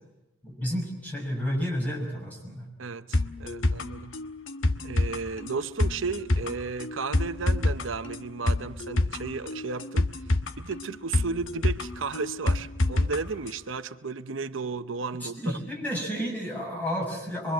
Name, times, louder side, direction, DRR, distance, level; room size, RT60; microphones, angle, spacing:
voice 1, 0.4-2.7 15.2-17.5, equal, 10° left, 6.6 m, -31 dB
voice 2, 2.8-4.1 4.8-10.1 10.6-15.6, right 4 dB, 85° right, 0.8 m, -34 dB
sound 1, 3.1-13.2 13.5-13.6, left 2 dB, 90° left, 1.2 m, -27 dB
24.0 x 23.5 x 7.7 m
head